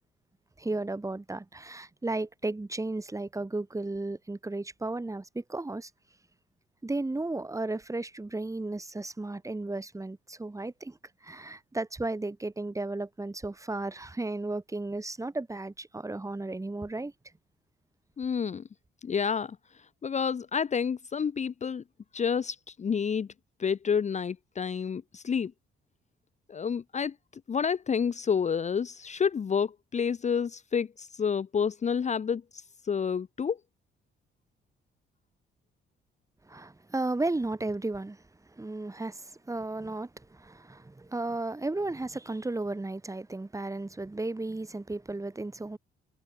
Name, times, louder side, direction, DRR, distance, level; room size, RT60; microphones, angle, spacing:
voice 1, 0.6-5.9 6.8-11.0 11.2-17.1 36.5-38.2 38.5-45.8, right 2 dB, 15° right, 3.8 m, -34 dB
voice 2, 18.2-18.6 19.0-19.6 20.0-21.8 22.1-23.3 23.6-25.5 26.5-27.1 27.5-33.6, left 6 dB, 35° left, 0.9 m, -29 dB
cardioid pair, 90°, 20 cm